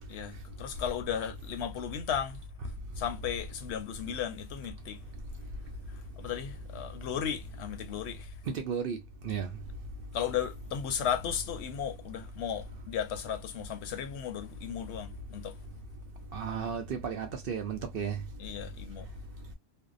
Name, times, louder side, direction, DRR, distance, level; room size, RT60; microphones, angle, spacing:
voice 1, 0.1-2.4 3.0-5.0 5.9-8.4 10.1-15.6 18.4-19.1, left 9 dB, 80° left, 0.9 m, -35 dB
voice 2, 8.5-9.0 9.2-9.5 16.3-18.2, right 7 dB, 65° right, 0.7 m, -34 dB
2.6 x 2.0 x 2.4 m
omnidirectional pair, 1.1 m